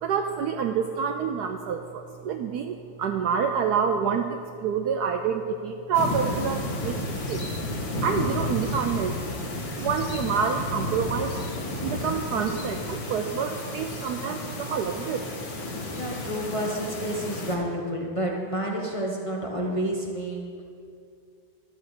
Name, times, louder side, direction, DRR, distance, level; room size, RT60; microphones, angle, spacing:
voice 1, 0.0-7.4 8.0-9.3 9.8-11.3 11.8-15.3, right 6 dB, 85° right, 5 dB, 0.8 m, -27 dB
sound 1, 5.9-17.6, left 1 dB, 65° left, 2.3 m, -32 dB
voice 2, 15.9-20.6, right 1 dB, 25° left, -2 dB, 0.8 m, -30 dB
13.0 x 6.6 x 6.6 m, 2.4 s
omnidirectional pair, 2.3 m